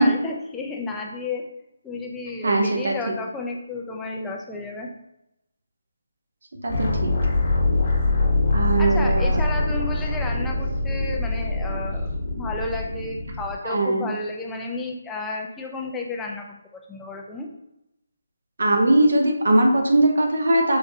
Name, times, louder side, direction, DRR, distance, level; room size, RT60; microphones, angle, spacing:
voice 1, 0.0-1.5 1.8-4.9 8.8-16.6 16.9-17.5, left 3 dB, 10° left, 0 dB, 0.4 m, -32 dB
voice 2, 2.4-3.1 6.6-7.1 8.5-9.4 13.6-14.1 18.6-20.8, right 1 dB, 70° right, 2 dB, 0.7 m, -20 dB
sound 1, 6.7-13.5, left 2 dB, 45° left, 1.1 m, -23 dB
4.8 x 2.1 x 2.7 m, 0.86 s
figure-of-eight pair, 155°, 0 cm